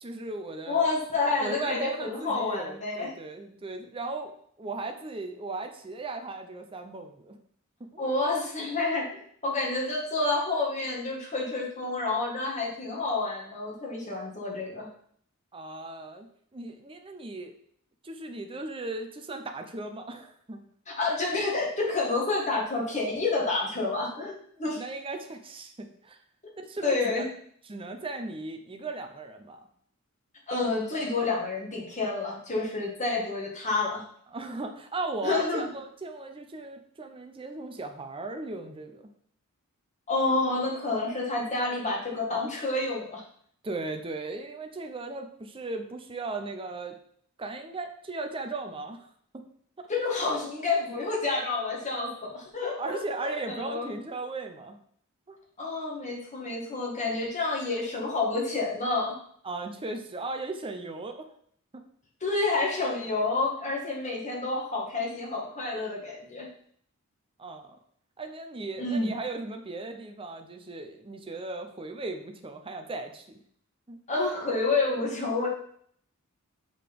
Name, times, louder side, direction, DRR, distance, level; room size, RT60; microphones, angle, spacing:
voice 1, 0.0-0.9 1.4-7.4 7.8-8.1 15.5-17.5 18.0-20.6 24.7-26.2 26.6-27.3 27.7-29.6 34.3-39.1 43.6-47.0 47.4-49.1 49.3-49.4 49.8-49.9 52.8-54.8 55.3-55.4 59.4-61.3 61.7-61.8 67.4-67.8 68.2-73.4 73.9-74.0, right 2 dB, 25° right, 5 dB, 0.7 m, -37 dB
voice 2, 0.7-3.1 8.0-14.9 20.9-24.8 26.8-27.3 30.5-34.1 35.2-35.7 40.1-43.2 49.9-53.9 55.6-59.2 62.2-66.5 68.8-69.1 74.1-75.5, left 3 dB, 35° left, -2 dB, 1.8 m, -29 dB
6.7 x 4.0 x 5.2 m, 0.63 s
head